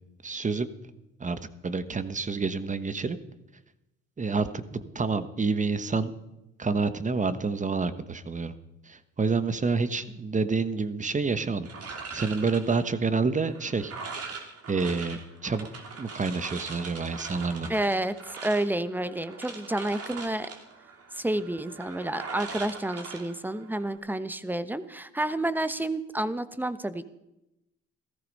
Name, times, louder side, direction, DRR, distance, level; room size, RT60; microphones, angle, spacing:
voice 1, 0.2-0.7 1.2-3.2 4.2-6.1 6.6-8.5 8.9-13.9 14.7-15.7 16.0-17.7, right 4 dB, 25° right, 12 dB, 1.2 m, -28 dB
sound 1, 11.6-24.0, right 4 dB, 50° right, 3.0 m, -41 dB
voice 2, 17.7-20.5 21.1-27.0, right 1 dB, 5° right, 13 dB, 1.0 m, -30 dB
16.0 x 14.0 x 5.5 m, 0.92 s
cardioid pair, 85°, 31 cm